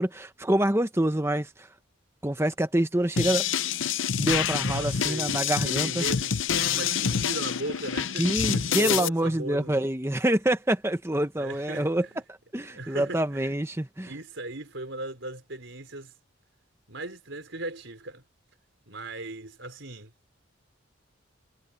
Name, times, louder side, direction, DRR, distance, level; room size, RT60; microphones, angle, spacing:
voice 1, 0.0-1.7 2.2-3.5 4.2-6.0 8.2-14.1, right 1 dB, 10° right, 0.9 m, -26 dB
sound 1, 3.2-9.1, left 8 dB, 70° left, 0.7 m, -27 dB
voice 2, 4.5-9.8 11.4-12.2 12.7-13.5 14.0-16.1 16.9-18.2 18.9-20.1, right 2 dB, 65° right, 4.6 m, -38 dB
head